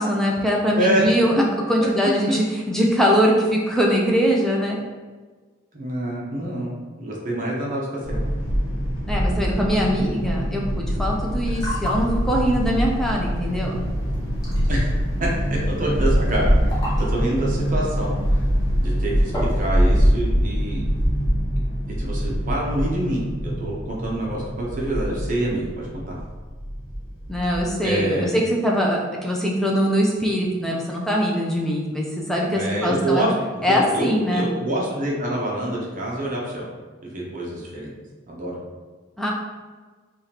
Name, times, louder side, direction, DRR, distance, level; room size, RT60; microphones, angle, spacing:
voice 1, 0.0-4.8 9.1-13.8 27.3-33.3 33.6-34.5 39.2-39.3, equal, ahead, -2 dB, 0.4 m, -22 dB
voice 2, 0.7-1.0 5.7-6.7 7.0-8.2 14.7-14.9 15.2-18.4 18.8-20.8 22.0-26.2 27.8-28.4 32.5-33.3 33.7-36.7 37.0-37.9 38.3-38.6, right 1 dB, 40° right, -3 dB, 0.7 m, -26 dB
sound 1, 8.0-27.7, equal, 90° left, 1.3 m, -24 dB
sound 2, 11.2-20.1, left 1 dB, 15° left, 0.8 m, -37 dB
4.8 x 2.4 x 2.9 m, 1.4 s
head